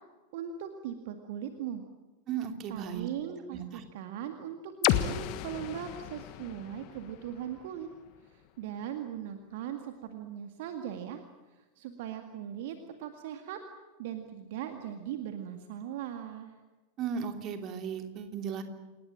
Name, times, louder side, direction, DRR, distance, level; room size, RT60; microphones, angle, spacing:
voice 1, 0.3-1.8 2.7-7.9 8.3-11.3 11.8-13.6 14.0-16.5, right 9 dB, 50° right, 6 dB, 2.0 m, -39 dB
voice 2, 2.3-3.1 3.5-3.8 17.0-18.6, right 7 dB, 35° right, 6 dB, 3.0 m, -36 dB
sound 1, 4.8-8.7, left 13 dB, 45° left, 1.4 m, -34 dB
28.5 x 18.5 x 8.9 m, 1.2 s
figure-of-eight pair, 90°, 0 cm